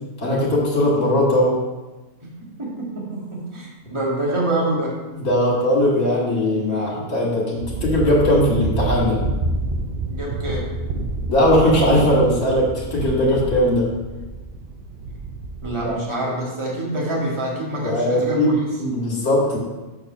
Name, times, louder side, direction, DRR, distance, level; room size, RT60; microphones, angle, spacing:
voice 1, 0.2-1.6 3.8-4.0 5.1-9.2 11.3-13.9 15.8-15.9 17.8-19.6, left 1 dB, 65° left, -4 dB, 2.6 m, -19 dB
voice 2, 2.2-5.0 10.1-10.7 15.6-18.7, right 1 dB, 20° right, -4 dB, 1.9 m, -26 dB
sound 1, 7.6-15.9, right 2 dB, 55° right, 0.6 m, -28 dB
6.8 x 4.7 x 6.2 m, 1.1 s
omnidirectional pair, 1.6 m